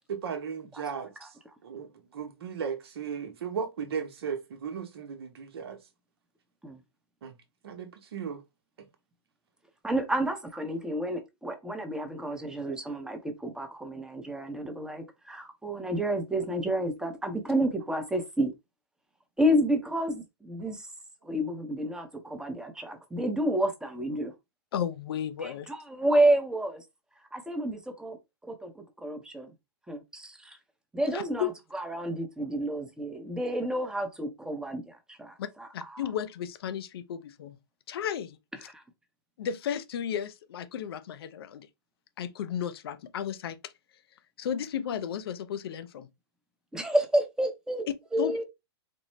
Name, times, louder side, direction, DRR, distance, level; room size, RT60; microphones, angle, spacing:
voice 1, 0.1-1.3 1.6-5.8 7.2-7.3 7.6-8.4, right 6 dB, 70° right, 0.9 m, -36 dB
voice 2, 0.9-1.3 6.6-6.8 9.8-18.5 19.4-20.9 21.2-24.3 25.4-26.8 27.3-28.2 28.4-29.5 29.9-30.6 30.9-36.0 38.7-38.8 46.7-47.9 48.1-48.4, right 1 dB, 5° right, 0.7 m, -30 dB
voice 3, 24.7-25.7 31.1-31.5 35.4-35.5 35.7-37.6 37.9-38.7 39.4-41.7 42.2-43.7 44.4-46.1 48.2-48.4, left 9 dB, 65° left, 0.6 m, -34 dB
4.2 x 2.1 x 3.1 m
hypercardioid pair, 120°, 14 cm